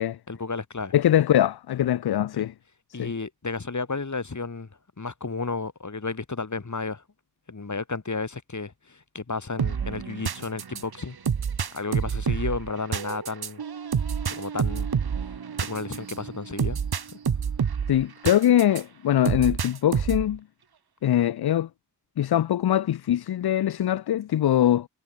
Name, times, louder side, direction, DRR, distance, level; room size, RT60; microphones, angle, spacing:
voice 1, 0.3-1.0 2.9-4.7 5.0-7.0 7.5-11.2 11.7-13.6 14.3-14.9 15.3-16.8, left 4 dB, 45° left, 3.7 m, -32 dB
voice 2, 0.9-2.5 3.0-3.1 17.9-20.4 21.0-21.7 22.2-24.9, left 11 dB, 65° left, 0.6 m, -22 dB
sound 1, 9.6-18.8 19.2-20.4, right 7 dB, 65° right, 1.6 m, -28 dB
cardioid pair, 40°, 41 cm